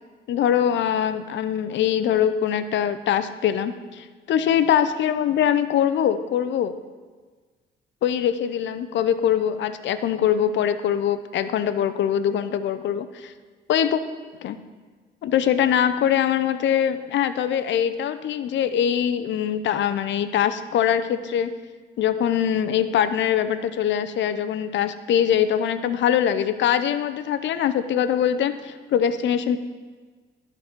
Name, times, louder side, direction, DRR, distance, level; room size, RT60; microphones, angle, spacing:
voice 1, 0.3-6.8 8.0-13.3 13.7-14.0 14.4-14.6 15.2-21.5 22.0-29.6, left 9 dB, 65° left, 12 dB, 0.6 m, -23 dB
11.5 x 4.0 x 5.9 m, 1.4 s
cardioid pair, 90°, 20 cm